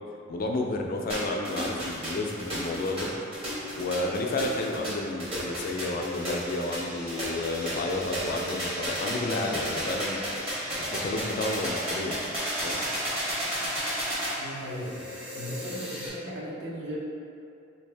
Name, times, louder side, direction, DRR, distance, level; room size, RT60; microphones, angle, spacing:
voice 1, 0.3-3.1 3.7-10.2 10.9-12.2 12.6-12.8, left 2 dB, 45° left, 1 dB, 0.3 m, -31 dB
sound 1, 1.1-16.1, equal, 30° right, 0.9 m, -33 dB
sound 2, 4.8-12.6, equal, 5° right, 0.6 m, -45 dB
voice 2, 14.4-15.0 15.3-17.0, equal, 55° right, -6 dB, 0.7 m, -37 dB
3.3 x 2.7 x 3.3 m, 2.5 s
head